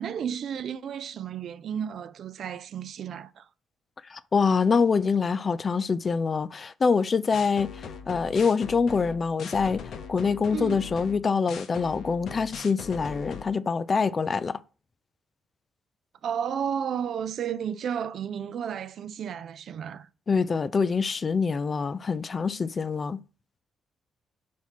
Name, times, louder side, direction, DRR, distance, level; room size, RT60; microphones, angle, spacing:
voice 1, 0.0-3.5 10.5-10.8 16.2-20.1, right 8 dB, 65° right, 0.4 m, -32 dB
voice 2, 4.1-14.6 20.3-23.2, left 5 dB, 35° left, 0.4 m, -25 dB
sound 1, 7.3-13.4, left 6 dB, 70° left, 0.8 m, -40 dB
4.6 x 4.2 x 5.8 m
cardioid pair, 90°, 0 cm